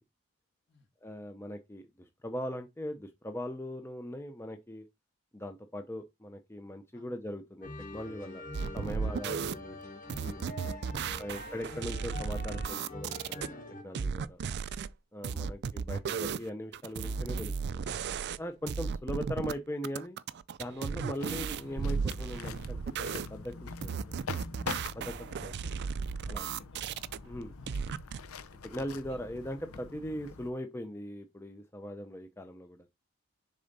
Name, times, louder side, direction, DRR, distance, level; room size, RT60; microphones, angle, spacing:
voice 1, 1.0-4.8 5.3-8.4 8.7-9.8 10.2-10.4 11.2-13.5 13.8-14.4 15.1-17.8 18.4-20.2 20.6-23.5 23.8-23.9 24.9-25.1 25.4-25.5 26.3-26.5 27.2-27.5 28.6-32.8, left 1 dB, 10° left, 0.5 m, -40 dB
sound 1, 7.6-13.8, left 1 dB, 40° left, 1.4 m, -44 dB
sound 2, 8.5-9.5 10.1-13.5 13.9-14.9 15.2-18.4 18.7-19.5 19.8-23.3 23.8-27.2 27.7-28.2, right 6 dB, 50° right, 0.4 m, -35 dB
voice 2, 9.3-11.3 14.4-14.7 18.9-19.1 25.3-25.8 26.4-27.2 27.5-27.8 29.1-29.3, left 3 dB, 55° left, 2.5 m, -61 dB
sound 3, 21.2-30.5, left 4 dB, 80° left, 0.7 m, -44 dB
6.7 x 3.9 x 4.0 m
head